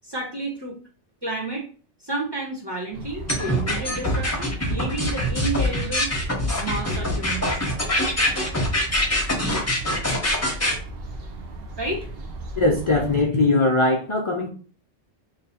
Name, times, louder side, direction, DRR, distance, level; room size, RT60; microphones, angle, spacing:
voice 1, 0.0-0.8 1.2-1.7 2.0-6.1 6.6-7.8 11.8-12.1, right 2 dB, 25° right, -1 dB, 0.6 m, -31 dB
sound 1, 2.9-13.3, right 2 dB, 60° right, 0.8 m, -37 dB
sound 2, 3.3-10.7, left 1 dB, 15° left, 0.7 m, -24 dB
voice 2, 12.6-14.5, left 2 dB, 50° left, 0 dB, 0.3 m, -20 dB
3.0 x 2.7 x 4.1 m, 0.38 s
omnidirectional pair, 1.3 m